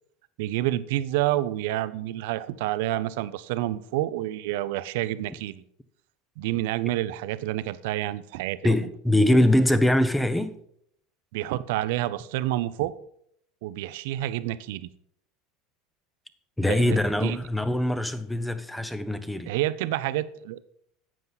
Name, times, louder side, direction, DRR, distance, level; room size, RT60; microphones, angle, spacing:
voice 1, 0.4-5.6 6.4-8.9 11.3-12.9 13.6-14.9 16.6-17.4 19.5-20.6, right 14 dB, 75° right, 0.6 m, -29 dB
voice 2, 8.6-10.5 16.6-19.5, left 1 dB, 5° left, 0.8 m, -23 dB
11.0 x 7.6 x 4.0 m
supercardioid pair, 115°, 0 cm